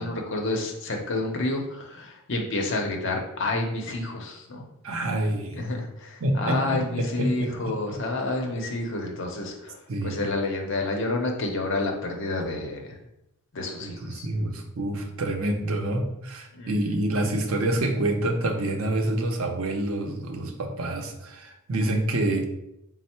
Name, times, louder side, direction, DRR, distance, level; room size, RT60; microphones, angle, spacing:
voice 1, 0.0-4.7 5.5-9.8 10.0-13.0 13.5-14.3 16.5-17.0, left 2 dB, 60° left, 2 dB, 0.7 m, -29 dB
voice 2, 4.8-5.6 6.2-8.0 9.9-10.2 13.8-22.5, right 1 dB, 70° right, 3 dB, 0.6 m, -27 dB
4.3 x 2.0 x 4.3 m, 0.84 s
head